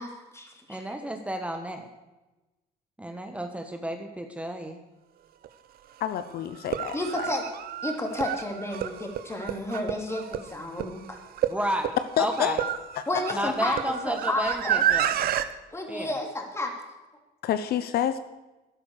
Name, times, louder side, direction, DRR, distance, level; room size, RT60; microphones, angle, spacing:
voice 1, 0.0-1.1 6.9-7.4 7.8-11.2 13.1-14.8 15.7-16.7, left 1 dB, 15° left, 2 dB, 3.1 m, -31 dB
voice 2, 0.7-1.9 3.0-4.8 11.5-11.9 12.2-12.6 13.3-15.3 15.9-16.1, right 1 dB, 10° right, 5 dB, 1.3 m, -32 dB
sound 1, 5.4-5.5 6.5-15.5, right 10 dB, 65° right, 0.9 m, -30 dB
voice 3, 6.0-7.3 12.2-12.6 13.3-13.4 17.4-18.2, left 10 dB, 65° left, 11 dB, 0.8 m, -28 dB
12.5 x 11.0 x 6.7 m, 1.1 s
cardioid pair, 110°, 17 cm